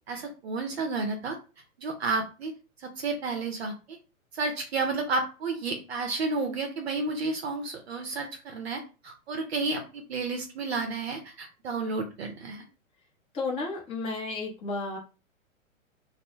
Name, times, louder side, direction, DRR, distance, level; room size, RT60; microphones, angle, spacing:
voice 1, 0.1-1.4 1.8-2.5 2.8-4.0 4.3-12.6, right 3 dB, 50° right, 4 dB, 0.5 m, -31 dB
voice 2, 13.3-15.0, left 3 dB, 15° left, -2 dB, 0.5 m, -32 dB
2.1 x 2.0 x 3.0 m, 0.32 s
figure-of-eight pair, 115°, 41 cm